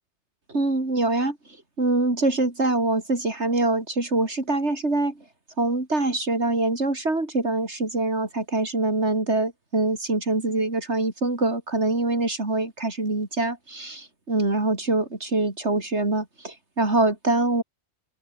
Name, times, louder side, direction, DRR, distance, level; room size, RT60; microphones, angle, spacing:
voice 1, 0.5-1.4 1.8-5.2 5.6-17.6, right 2 dB, 75° right, 4.4 m, -24 dB
open air
omnidirectional pair, 1.2 m